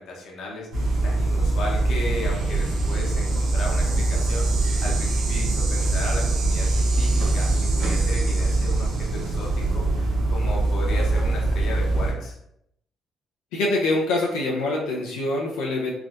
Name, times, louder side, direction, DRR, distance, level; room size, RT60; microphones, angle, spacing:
voice 1, 0.0-4.5 4.8-7.5 7.7-12.3, left 2 dB, 65° left, -2 dB, 0.8 m, -35 dB
sound 1, 0.7-12.1, right 2 dB, 70° right, 0.7 m, -23 dB
voice 2, 13.5-15.9, left 2 dB, 85° left, -2 dB, 0.4 m, -24 dB
3.3 x 2.5 x 2.5 m, 0.76 s
hypercardioid pair, 55°, 0 cm